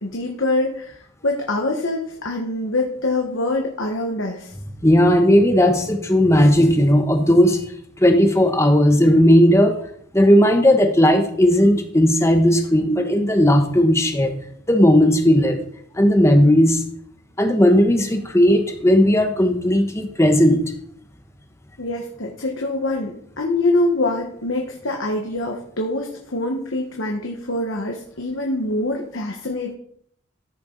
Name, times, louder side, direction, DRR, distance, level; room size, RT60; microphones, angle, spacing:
voice 1, 0.0-4.5 21.8-23.1 23.4-29.8, left 2 dB, 70° left, 1 dB, 1.4 m, -24 dB
voice 2, 4.8-7.6 8.0-9.8 10.1-14.3 14.7-15.6 15.9-16.8 17.4-20.6, equal, 15° left, 6 dB, 1.1 m, -15 dB
14.0 x 6.9 x 4.0 m, 0.65 s
head